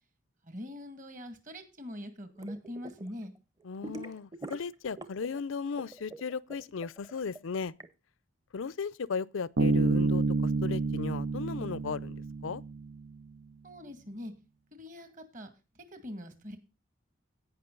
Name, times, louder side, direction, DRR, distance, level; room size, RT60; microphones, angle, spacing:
voice 1, 0.5-3.3 13.6-14.3 14.7-15.5 15.9-16.6, left 1 dB, 40° right, 2.0 m, -43 dB
sound 1, 2.4-3.1 3.4-5.4 5.6-7.9, right 2 dB, 20° right, 0.8 m, -44 dB
voice 2, 3.6-7.7 8.5-12.6, left 5 dB, 85° left, 0.5 m, -36 dB
Bass guitar, 9.6-13.0, right 3 dB, 85° right, 0.8 m, -29 dB
17.0 x 5.9 x 3.9 m
head